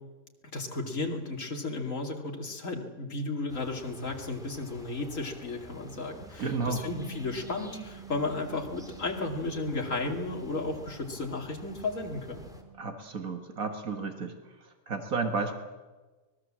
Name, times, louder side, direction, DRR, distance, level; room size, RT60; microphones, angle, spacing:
voice 1, 0.5-12.5, left 3 dB, 65° left, 2 dB, 3.0 m, -34 dB
sound 1, 3.5-12.6, equal, ahead, 2.9 m, -51 dB
voice 2, 6.4-6.8 12.8-14.4 14.9-15.5, right 4 dB, 75° right, 6 dB, 2.1 m, -32 dB
Bass guitar, 6.7-12.9, right 8 dB, 35° left, 3.8 m, -50 dB
24.5 x 20.0 x 7.6 m, 1.3 s
omnidirectional pair, 1.5 m